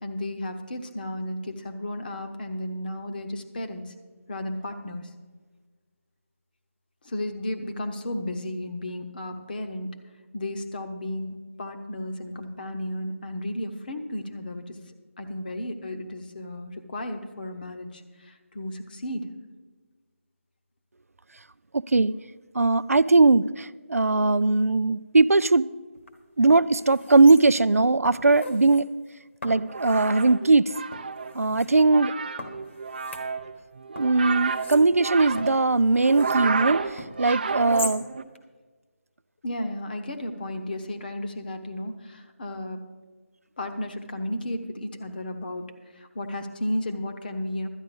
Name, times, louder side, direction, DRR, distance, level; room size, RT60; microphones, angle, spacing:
voice 1, 0.0-3.9 4.3-5.1 7.0-10.0 10.3-14.8 15.2-19.3 39.4-42.9 43.6-47.7, left 1 dB, 40° left, 7 dB, 1.0 m, -33 dB
voice 2, 21.7-22.1 22.5-25.7 26.4-28.9 29.4-30.7 31.3-32.1 33.9-38.1, right 3 dB, 85° right, 17 dB, 0.4 m, -20 dB
sound 1, 25.9-26.1 26.5-27.7 28.0-28.8 29.4-30.3 30.9-31.7 32.4-33.7 34.0-36.4 37.0-38.0 38.3-38.4, left 2 dB, 55° left, 1.4 m, -41 dB
sound 2, 29.5-38.2, right 5 dB, 40° right, 0.6 m, -31 dB
12.0 x 9.6 x 5.2 m, 1.4 s
figure-of-eight pair, 160°, 8 cm